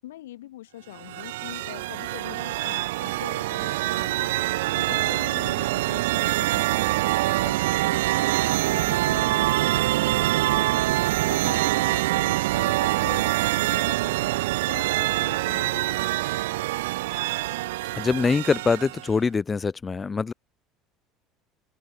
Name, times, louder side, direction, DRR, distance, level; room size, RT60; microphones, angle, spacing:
voice 1, 0.0-4.4 4.8-7.1 7.4-10.9 11.3-16.6, left 14 dB, 85° left, 5.8 m, -43 dB
sound 1, 0.9-19.1, right 18 dB, 80° right, 0.4 m, -25 dB
voice 2, 18.0-20.3, left 5 dB, 25° left, 1.9 m, -24 dB
open air
hypercardioid pair, 75°, 0 cm